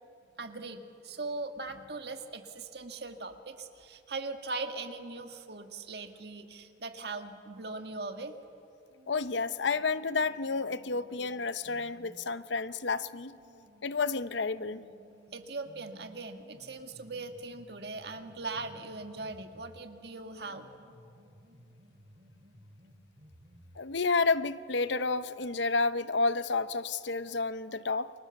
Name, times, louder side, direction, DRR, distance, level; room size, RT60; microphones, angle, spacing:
voice 1, 0.4-8.3 15.3-20.7, right 3 dB, 60° right, 6 dB, 1.7 m, -40 dB
sound 1, 8.9-12.2 12.9-19.9 20.4-23.9, equal, 45° right, 2.9 m, -58 dB
voice 2, 9.1-13.3 13.8-14.8 23.8-28.1, left 4 dB, 70° left, 14 dB, 0.8 m, -30 dB
30.0 x 24.0 x 7.1 m, 2.7 s
head